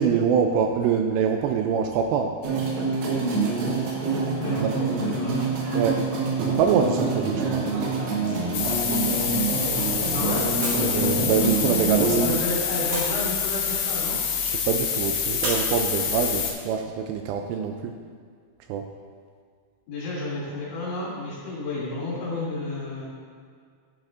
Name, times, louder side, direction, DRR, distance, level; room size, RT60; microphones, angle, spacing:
voice 1, 0.0-2.4 4.6-4.7 5.7-6.0 6.4-7.7 10.8-12.4 14.4-17.9 18.7-18.9, right 7 dB, 85° right, 4 dB, 2.5 m, -25 dB
sound 1, 2.4-12.2, right 3 dB, 70° right, 2.4 m, -26 dB
voice 2, 4.4-5.5 10.1-10.4 11.9-14.2 19.9-23.1, left 2 dB, 60° left, -9 dB, 4.1 m, -31 dB
sound 2, 7.8-10.1 10.6-12.2 12.9-14.3 15.4-16.8, right 1 dB, 55° right, 2.8 m, -38 dB
sound 3, 8.5-16.5, left 7 dB, 90° left, 3.3 m, -27 dB
11.0 x 7.6 x 2.5 m, 2.1 s
omnidirectional pair, 5.3 m